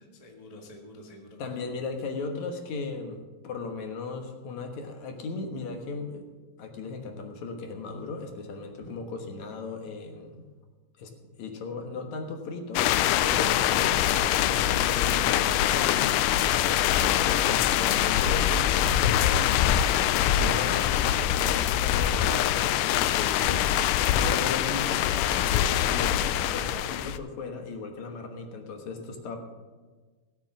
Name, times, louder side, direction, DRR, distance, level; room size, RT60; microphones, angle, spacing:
voice 1, 0.0-1.4 8.8-8.9 22.0-22.5, left 2 dB, 40° left, 1 dB, 0.5 m, -45 dB
voice 2, 1.4-6.3 6.6-10.5 11.0-11.1 11.4-19.7 20.3-29.4, left 3 dB, 65° left, 4 dB, 2.5 m, -37 dB
sound 1, 12.8-27.2, left 11 dB, 80° left, 2.1 m, -24 dB
17.0 x 7.4 x 6.2 m, 1.3 s
omnidirectional pair, 3.8 m